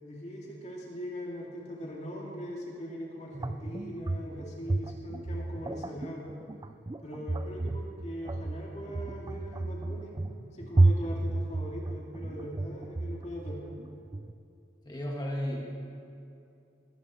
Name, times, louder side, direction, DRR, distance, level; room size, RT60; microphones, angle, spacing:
voice 1, 0.0-6.3 7.0-10.2 10.5-13.6, equal, 40° left, -2 dB, 2.2 m, -41 dB
sound 1, 3.3-14.3, right 2 dB, 20° right, 0.4 m, -31 dB
voice 2, 14.8-15.8, equal, 25° left, -1 dB, 2.0 m, -34 dB
20.5 x 14.0 x 4.3 m, 2.6 s
head